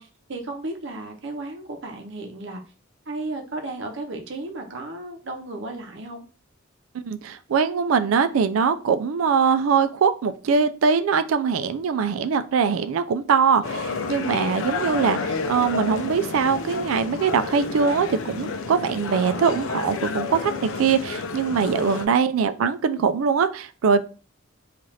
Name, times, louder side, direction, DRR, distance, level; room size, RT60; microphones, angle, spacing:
voice 1, 0.0-2.6 3.1-6.2, right 2 dB, 60° right, 0.7 m, -34 dB
voice 2, 6.9-24.0, right 6 dB, 80° right, 0.4 m, -22 dB
sound 1, 13.6-22.1, left 4 dB, 75° left, 0.5 m, -30 dB
3.2 x 2.5 x 4.0 m
head